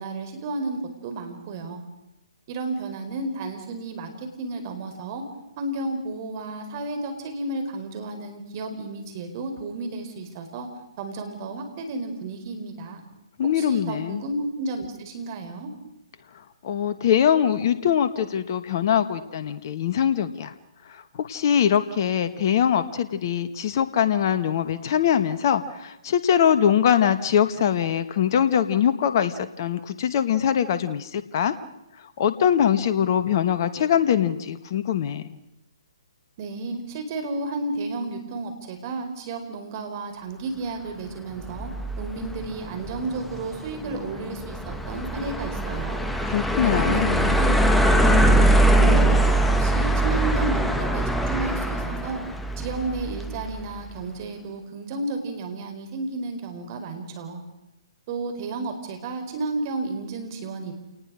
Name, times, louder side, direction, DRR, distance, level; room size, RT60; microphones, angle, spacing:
voice 1, 0.0-1.8 2.5-5.2 5.6-10.7 11.0-13.0 13.4-15.7 36.4-41.7 42.0-46.1 46.6-47.6 47.8-52.2 52.6-57.4 58.1-60.7, right 2 dB, 40° right, 6 dB, 4.6 m, -32 dB
voice 2, 13.4-14.2 16.6-20.5 20.8-31.6 32.2-35.3 46.2-47.4, left 9 dB, 45° left, 12 dB, 1.4 m, -22 dB
sound 1, 41.4-53.6, right 1 dB, 5° left, 1.3 m, -22 dB
29.0 x 19.5 x 6.4 m, 0.92 s
figure-of-eight pair, 130°, 3 cm